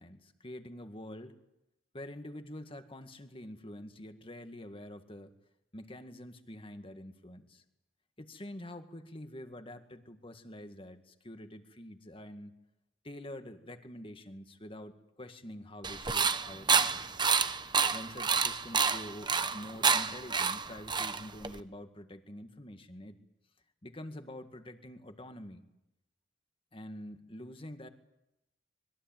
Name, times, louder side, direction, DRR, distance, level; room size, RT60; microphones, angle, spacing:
voice 1, 0.0-1.4 1.9-5.3 5.7-7.6 8.2-12.5 13.0-17.0 17.9-23.2 23.8-25.6 26.7-27.9, left 1 dB, 30° left, 7 dB, 2.0 m, -46 dB
sound 1, 15.8-21.6, right 5 dB, 25° right, 1.0 m, -29 dB
25.5 x 22.0 x 9.2 m, 0.88 s
head